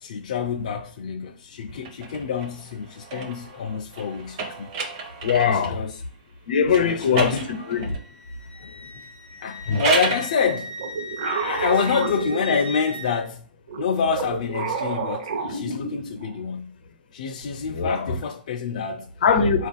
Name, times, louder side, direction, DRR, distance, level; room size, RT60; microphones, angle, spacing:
voice 1, 0.0-4.7 5.4-6.0 6.8-7.4 8.6-8.9 9.4-10.7 11.2-13.5 13.8-16.7 17.1-19.1 19.6-19.7, left 6 dB, 50° left, 0.3 m, -27 dB
sound 1, 1.8-5.8 6.7-8.1 9.5-10.3, right 4 dB, 30° right, 0.5 m, -30 dB
voice 2, 5.2-5.8 6.5-7.9 9.7-9.9 17.6-18.2 19.2-19.7, left 6 dB, 80° left, 0.7 m, -21 dB
Wind instrument woodwind instrument, 7.5-13.2, equal, 85° right, 1.0 m, -39 dB
sound 2, 10.3-13.1 13.7-16.4, right 4 dB, 60° right, 0.7 m, -30 dB
4.0 x 2.4 x 3.9 m
hypercardioid pair, 180°, 5 cm